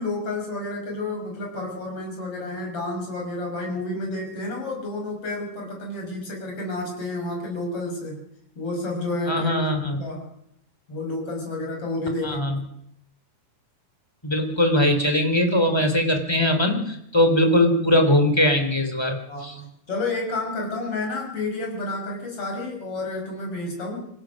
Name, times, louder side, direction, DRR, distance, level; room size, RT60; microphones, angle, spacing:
voice 1, 0.0-8.2 8.6-9.7 10.0-10.3 10.9-12.4 19.3-24.0, left 2 dB, 45° left, 1 dB, 6.6 m, -30 dB
voice 2, 9.3-10.0 12.2-12.5 14.2-19.5, left 1 dB, 10° left, 6 dB, 2.8 m, -21 dB
26.0 x 16.0 x 6.5 m, 0.74 s
omnidirectional pair, 3.6 m